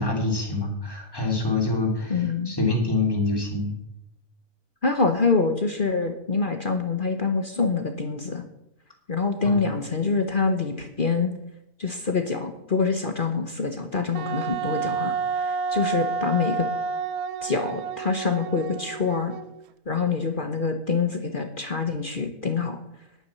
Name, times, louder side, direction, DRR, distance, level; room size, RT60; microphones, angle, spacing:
voice 1, 0.0-3.7 9.4-9.6, left 2 dB, 15° left, 0 dB, 2.9 m, -26 dB
voice 2, 2.1-2.5 4.8-8.4 9.1-11.3 11.8-16.7 17.4-19.3 19.9-22.8, left 4 dB, 40° left, 6 dB, 1.1 m, -25 dB
Wind instrument woodwind instrument, 14.1-19.6, right 5 dB, 85° right, 1.1 m, -29 dB
10.5 x 9.5 x 7.0 m, 0.83 s
omnidirectional pair, 1.5 m